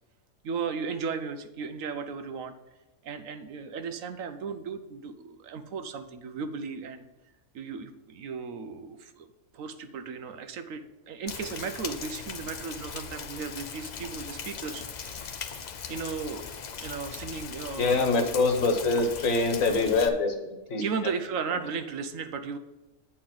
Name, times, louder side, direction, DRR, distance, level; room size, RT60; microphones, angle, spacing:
voice 1, 0.4-2.5 3.0-7.1 7.5-9.3 9.5-16.5 16.8-18.3 20.8-22.6, right 5 dB, 70° right, 8 dB, 1.1 m, -36 dB
Rain, 11.3-20.1, left 6 dB, 55° left, 0.5 m, -39 dB
voice 2, 17.8-20.8, left 3 dB, 70° left, 5 dB, 1.6 m, -24 dB
8.7 x 4.5 x 7.4 m, 1.1 s
omnidirectional pair, 1.5 m